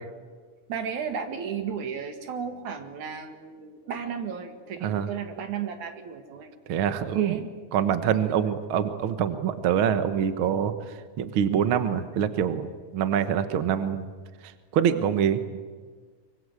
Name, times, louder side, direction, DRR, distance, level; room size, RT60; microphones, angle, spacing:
voice 1, 0.7-6.9 7.1-7.5 8.2-8.3, right 7 dB, 80° right, 6 dB, 3.3 m, -34 dB
voice 2, 6.7-7.4 7.7-12.7 12.9-14.1 14.7-15.4, right 8 dB, 55° right, 9 dB, 1.7 m, -25 dB
24.5 x 24.5 x 8.1 m, 1.6 s
omnidirectional pair, 3.4 m